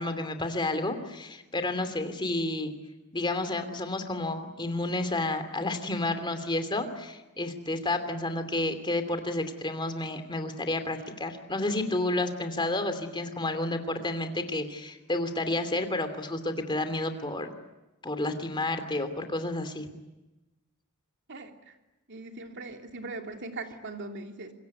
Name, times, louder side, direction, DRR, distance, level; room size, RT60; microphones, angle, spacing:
voice 1, 0.0-2.7 3.1-17.5 18.0-19.9, left 2 dB, 20° left, 8 dB, 2.8 m, -30 dB
voice 2, 21.3-21.7 22.1-24.5, right 3 dB, 55° right, 4 dB, 3.0 m, -40 dB
26.5 x 22.0 x 9.6 m, 1.0 s
head